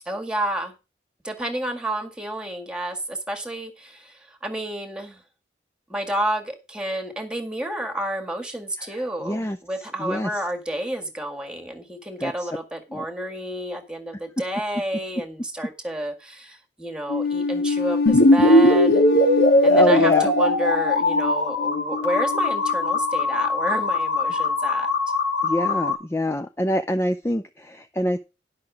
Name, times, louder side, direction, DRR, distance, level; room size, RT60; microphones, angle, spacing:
voice 1, 0.1-0.7 1.2-5.2 5.9-19.0 19.6-24.9, right 1 dB, 5° right, 4 dB, 1.9 m, -30 dB
voice 2, 9.2-9.6 10.0-10.3 12.2-12.5 12.9-13.1 19.7-20.3 25.4-28.2, left 1 dB, 15° left, 7 dB, 0.5 m, -25 dB
sound 1, 17.1-23.5, left 3 dB, 60° left, 1.3 m, -26 dB
sound 2, 18.1-25.9, left 1 dB, 85° left, 2.1 m, -20 dB
11.0 x 5.9 x 6.2 m, 0.28 s
head